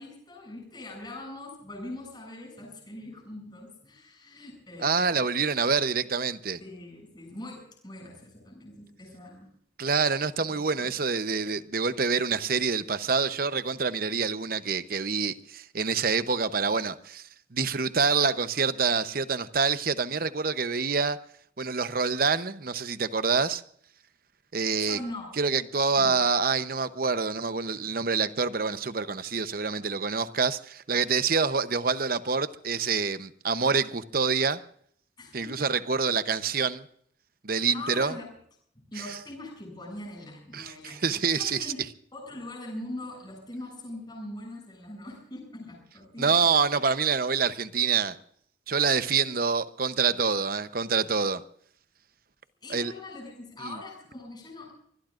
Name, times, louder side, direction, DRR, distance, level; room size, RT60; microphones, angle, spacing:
voice 1, 0.0-5.3 6.6-9.5 24.8-25.3 26.0-26.2 35.2-35.7 37.5-38.3 38.7-41.8 42.1-46.5 52.6-54.7, left 1 dB, 25° left, 7.8 m, -42 dB
voice 2, 4.8-6.6 9.8-17.2 17.5-21.2 21.6-23.6 24.5-25.0 25.4-34.6 35.3-36.8 37.4-38.1 39.0-39.2 40.5-41.7 46.2-48.1 48.7-51.4 52.7-52.9 53.6-53.8, right 5 dB, 50° right, 0.9 m, -26 dB
25.5 x 21.0 x 2.6 m
head